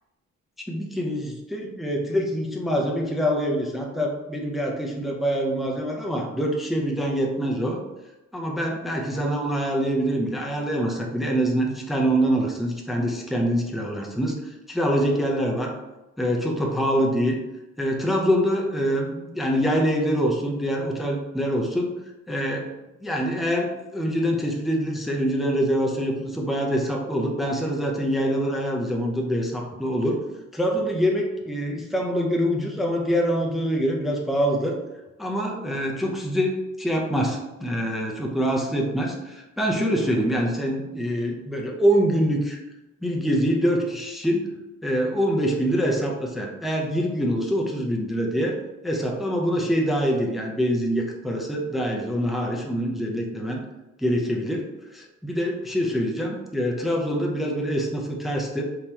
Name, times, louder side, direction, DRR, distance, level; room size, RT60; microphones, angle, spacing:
voice 1, 0.7-7.8 8.3-15.8 16.2-17.4 17.8-21.9 22.3-22.7 23.0-30.2 30.5-34.8 35.2-42.6 43.0-44.5 44.8-48.6 48.8-53.6 54.0-58.6, equal, ahead, 0 dB, 0.6 m, -25 dB
3.6 x 3.0 x 2.8 m, 1.0 s
cardioid pair, 90°, 30 cm